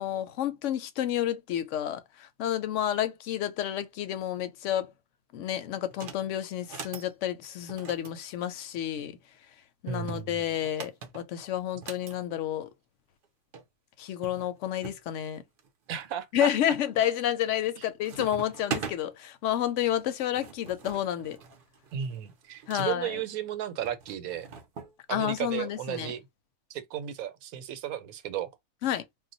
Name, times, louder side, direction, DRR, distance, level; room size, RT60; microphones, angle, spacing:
voice 1, 0.0-4.9 5.3-9.2 9.8-12.7 14.0-15.4 16.3-21.4 22.7-23.2 25.1-26.1 28.8-29.0, left 11 dB, 70° left, 0.9 m, -30 dB
sound 1, 5.9-6.2 6.6-7.1 7.7-9.1 9.9-12.2 13.2-13.3 13.5-13.6 14.2-15.0 15.6-16.1 16.6-17.0 17.3-17.8 18.0-19.0 20.0-22.9 23.9-24.9, right 6 dB, 55° right, 0.6 m, -41 dB
voice 2, 9.9-10.4 15.9-16.5 17.8-17.9 21.9-24.5 25.1-26.2 26.7-28.5, right 10 dB, 90° right, 1.1 m, -34 dB
2.3 x 2.1 x 3.9 m
omnidirectional pair, 1.4 m